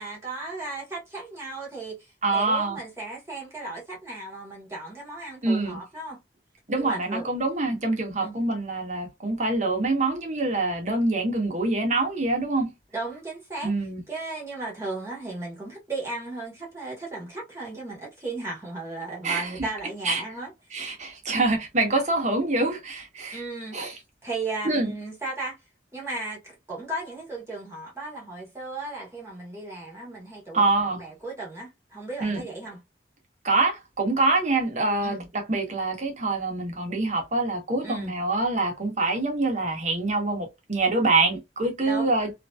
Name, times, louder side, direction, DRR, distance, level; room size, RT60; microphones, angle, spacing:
voice 1, 0.0-6.2 6.8-7.3 8.2-8.4 12.9-13.7 14.1-20.8 23.3-23.8 24.2-25.6 25.9-30.6 30.9-32.8 35.0-35.3 37.8-38.1 41.8-42.1, right 2 dB, 15° right, 1.2 m, -35 dB
voice 2, 2.2-2.8 5.4-5.8 6.7-12.7 13.6-14.0 19.2-19.5 20.0-20.2 20.7-23.4 23.7-23.9 24.6-24.9 30.5-31.0 32.2-32.4 33.4-42.3, right 2 dB, 45° right, 1.0 m, -25 dB
3.0 x 2.6 x 2.3 m
head